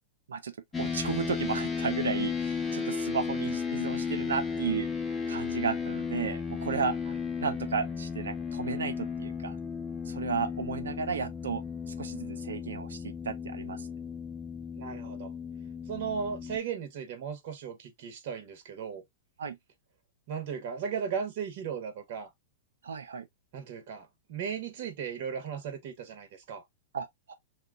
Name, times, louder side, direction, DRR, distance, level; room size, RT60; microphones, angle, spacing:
voice 1, 0.3-4.9 5.3-7.0 7.4-9.6 10.1-11.6 11.9-13.9 19.4-19.6 22.8-23.3 26.9-27.3, right 6 dB, 80° right, 0.6 m, -33 dB
sound 1, 0.7-16.6, left 6 dB, 15° left, 0.9 m, -34 dB
voice 2, 14.8-15.3 15.9-19.0 20.3-22.3 23.5-26.6, right 7 dB, 55° right, 1.1 m, -36 dB
2.9 x 2.3 x 3.7 m
hypercardioid pair, 110°, 0 cm